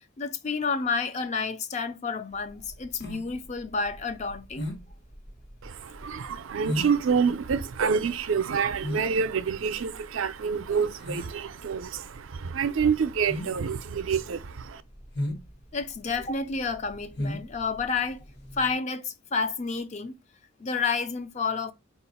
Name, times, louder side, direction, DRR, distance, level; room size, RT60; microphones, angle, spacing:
voice 1, 0.2-4.7 15.7-18.2 18.5-20.1 20.6-21.7, left 5 dB, 35° left, 0.4 m, -30 dB
sound 1, 2.4-18.7, equal, 55° left, 1.2 m, -37 dB
voice 2, 5.6-14.8, right 6 dB, 80° right, 0.4 m, -27 dB
4.5 x 2.4 x 4.1 m
head